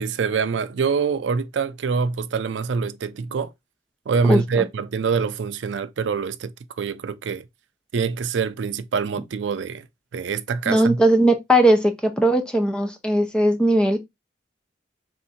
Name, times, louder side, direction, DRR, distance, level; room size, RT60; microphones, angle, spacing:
voice 1, 0.0-3.5 4.1-7.4 7.9-9.8 10.1-11.0, right 5 dB, 85° right, 0.4 m, -25 dB
voice 2, 4.3-4.6 10.7-14.0, right 1 dB, 5° left, 0.6 m, -19 dB
3.5 x 2.7 x 4.1 m
head